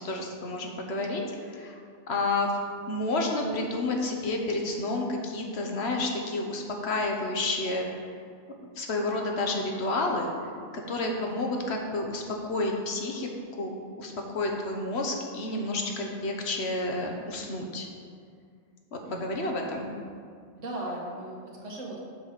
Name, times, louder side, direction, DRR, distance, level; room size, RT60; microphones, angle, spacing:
voice 1, 0.0-1.8 2.1-2.5 2.9-8.0 8.8-10.3 10.9-12.2 12.5-13.7 14.0-17.9 18.9-19.9, left 2 dB, 60° left, 1 dB, 1.1 m, -30 dB
voice 2, 19.0-19.4 20.5-22.0, right 1 dB, 75° right, -3 dB, 1.8 m, -38 dB
7.6 x 4.1 x 6.4 m, 2.1 s
omnidirectional pair, 1.2 m